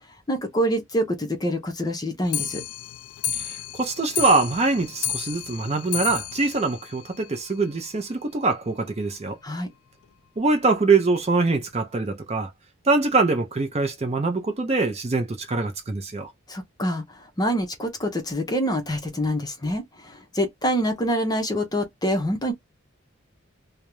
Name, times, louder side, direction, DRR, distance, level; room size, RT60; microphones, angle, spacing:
voice 1, 0.3-2.6 9.4-9.7 16.5-22.5, equal, 20° left, 0.5 m, -26 dB
Clock, 2.2-7.7 8.1-8.2 8.4-8.5 8.9-9.0 9.2-9.3 10.0-10.1 10.8-10.9 11.6-11.7, left 9 dB, 85° left, 0.3 m, -32 dB
voice 2, 3.3-9.4 10.4-12.5 12.8-16.3, right 3 dB, 30° right, 0.5 m, -23 dB
2.3 x 2.0 x 2.9 m
head